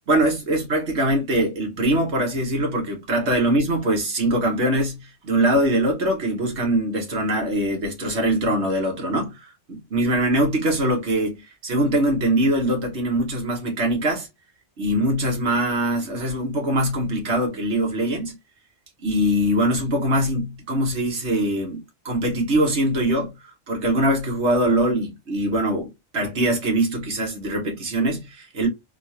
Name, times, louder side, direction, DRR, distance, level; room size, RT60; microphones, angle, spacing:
voice 1, 0.1-14.3 14.8-18.4 19.0-21.8 22.0-23.3 23.7-28.7, right 1 dB, 70° right, 1.5 m, -22 dB
3.7 x 2.4 x 2.7 m
omnidirectional pair, 1.2 m